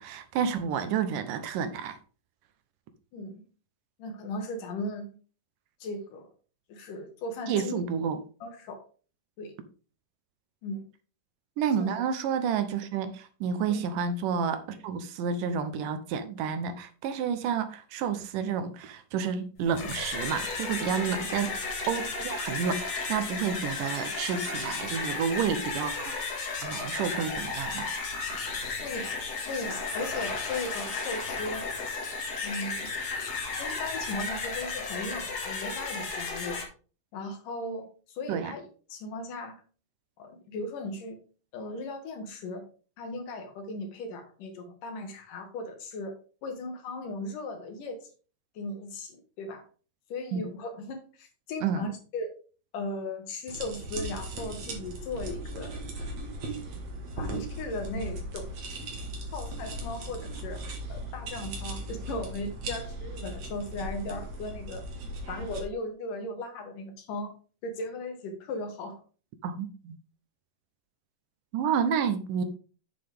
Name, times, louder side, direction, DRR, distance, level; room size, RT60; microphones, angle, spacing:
voice 1, 0.0-2.0 7.5-8.2 11.6-21.6 21.9-26.1 26.6-27.9 38.3-38.5 50.3-50.5 51.6-51.8 69.4-70.0 71.5-72.4, right 7 dB, 75° right, 2.4 m, -30 dB
voice 2, 3.1-3.4 4.0-5.2 5.8-6.3 6.7-7.8 8.4-8.8 9.4-9.5 10.6-10.8 11.8-11.9 13.7-13.9 21.0-21.1 28.8-29.1 29.5-31.6 32.4-32.9 33.6-36.6 37.1-39.6 40.2-41.2 41.5-42.7 43.0-48.1 48.5-49.6 50.1-52.3 52.7-55.8 57.2-58.6 59.3-60.6 60.9-64.8 65.3-67.3 67.6-69.0, left 2 dB, 70° left, 3.2 m, -37 dB
sound 1, 19.6-36.6, left 4 dB, 50° left, 2.9 m, -34 dB
sound 2, 53.5-65.6, right 1 dB, 55° right, 2.9 m, -38 dB
8.7 x 7.5 x 3.5 m
omnidirectional pair, 4.0 m